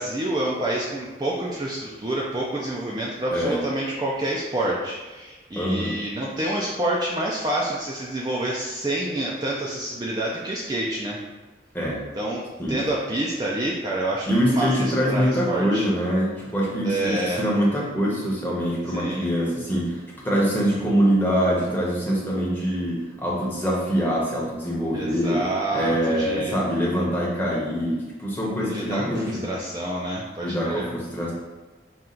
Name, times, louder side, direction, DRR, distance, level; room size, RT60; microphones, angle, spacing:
voice 1, 0.0-11.2 12.2-12.4 12.7-15.9 16.8-17.4 18.9-19.3 24.9-26.6 28.6-30.8, right 1 dB, 25° right, -4 dB, 0.3 m, -28 dB
voice 2, 3.3-3.6 5.6-5.9 11.7-12.0 12.6-12.8 14.3-25.4 25.7-29.4 30.4-31.3, equal, 10° left, -5 dB, 0.8 m, -24 dB
4.3 x 2.4 x 3.8 m, 1.2 s
head